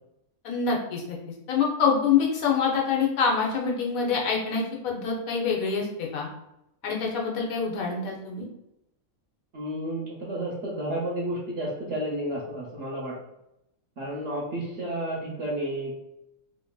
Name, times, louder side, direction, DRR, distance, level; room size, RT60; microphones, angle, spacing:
voice 1, 0.4-1.2 1.5-6.3 6.8-8.5, left 5 dB, 80° left, -1 dB, 1.1 m, -26 dB
voice 2, 9.5-13.2 14.0-16.0, right 1 dB, 65° right, -2 dB, 0.9 m, -31 dB
2.9 x 2.5 x 2.2 m, 0.85 s
omnidirectional pair, 1.5 m